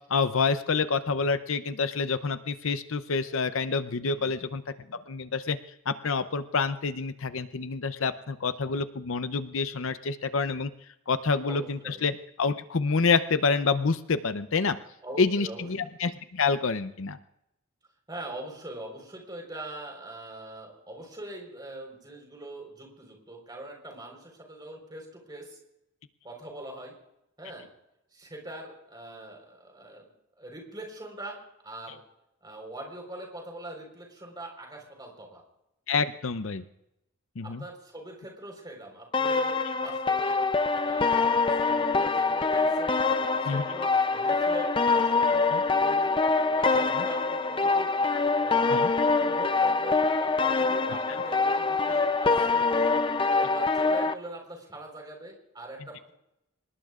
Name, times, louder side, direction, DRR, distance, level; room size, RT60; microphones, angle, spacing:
voice 1, 0.1-4.6 4.9-5.6 5.9-10.7 11.1-14.8 15.2-17.2 35.9-36.6 37.4-37.6 43.5-43.6 45.5-45.6 46.9-47.0 48.7-48.9, left 4 dB, 60° left, 11 dB, 0.6 m, -27 dB
voice 2, 11.5-12.0 15.0-15.7 18.1-25.6 26.2-26.9 27.4-27.7 28.1-30.1 30.4-32.0 32.4-35.4 37.4-40.4 40.8-43.0 43.4-46.1 46.6-47.9 48.4-52.9 53.3-56.1, right 1 dB, 20° right, 1 dB, 4.3 m, -42 dB
sound 1, 39.1-54.1, left 4 dB, 20° left, 0.5 m, -25 dB
25.5 x 20.0 x 2.5 m, 0.86 s
head